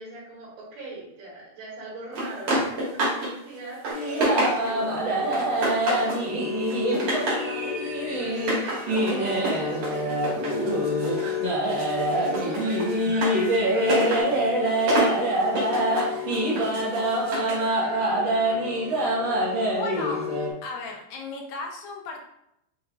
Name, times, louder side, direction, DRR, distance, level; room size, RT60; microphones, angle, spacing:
voice 1, 0.0-5.4 5.9-6.5 7.0-15.1 15.7-18.3, right 2 dB, 90° right, -9 dB, 3.6 m, -41 dB
sound 1, 2.1-3.3 3.6-4.9 5.3-6.2 6.6-7.5 8.3-11.3 11.6-17.7, right 1 dB, 50° right, 2.2 m, -29 dB
sound 2, 3.9-20.5, equal, 65° right, 1.1 m, -25 dB
sound 3, 7.1-9.8 13.1-14.2, equal, 55° left, 1.6 m, -44 dB
voice 2, 19.7-20.3 20.6-22.2, left 3 dB, 80° left, 1 dB, 2.2 m, -34 dB
7.7 x 2.9 x 2.3 m, 0.78 s
omnidirectional pair, 4.3 m